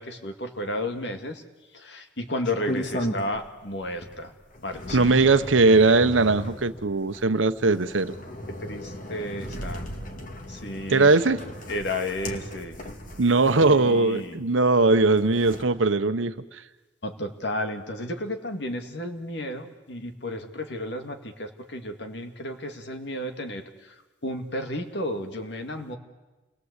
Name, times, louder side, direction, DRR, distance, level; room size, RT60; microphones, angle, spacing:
voice 1, 0.0-1.4 1.7-4.3 4.6-5.4 8.5-9.8 10.5-11.2 11.7-12.8 13.7-14.4 17.0-23.9 24.2-26.0, left 1 dB, 60° left, 6 dB, 2.2 m, -33 dB
sound 1, 2.4-3.6 4.0-14.3 14.9-15.6, equal, 45° left, 2.3 m, -36 dB
voice 2, 4.9-8.1 10.9-11.4 13.2-16.6, right 3 dB, 85° right, 11 dB, 1.0 m, -20 dB
28.5 x 20.5 x 8.3 m, 1.2 s
head